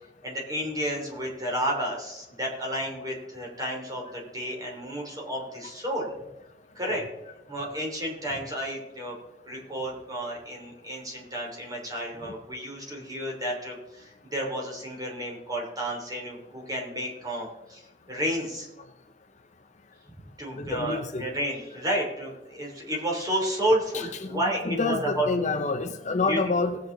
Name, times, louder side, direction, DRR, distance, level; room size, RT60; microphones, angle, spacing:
voice 1, 0.2-6.1 6.7-7.0 7.5-9.1 9.4-17.8 18.1-18.7 20.4-25.3 26.2-26.4, equal, 20° right, -1 dB, 3.4 m, -31 dB
voice 2, 20.6-21.3 24.2-24.4 24.7-26.8, left 3 dB, 45° left, 7 dB, 0.8 m, -27 dB
18.0 x 8.4 x 4.0 m, 0.95 s
head